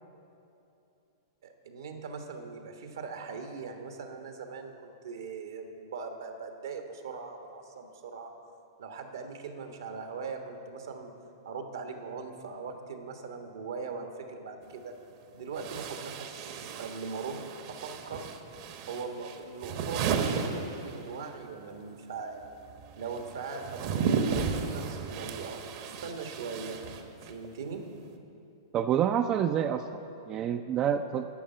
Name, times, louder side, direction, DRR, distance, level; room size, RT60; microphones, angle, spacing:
voice 1, 1.4-8.3 8.8-11.1 11.4-14.9 15.3-17.4 17.7-18.3 18.9-22.5 23.0-26.8 27.2-27.8, right 4 dB, 75° right, 5 dB, 1.3 m, -40 dB
sound 1, 14.6-14.7 15.5-21.4 21.6-27.5, right 6 dB, 50° right, 1.0 m, -34 dB
voice 2, 28.7-30.0 30.3-31.3, right 9 dB, 30° right, 8 dB, 0.4 m, -27 dB
11.5 x 5.5 x 7.8 m, 2.8 s
hypercardioid pair, 115°, 2 cm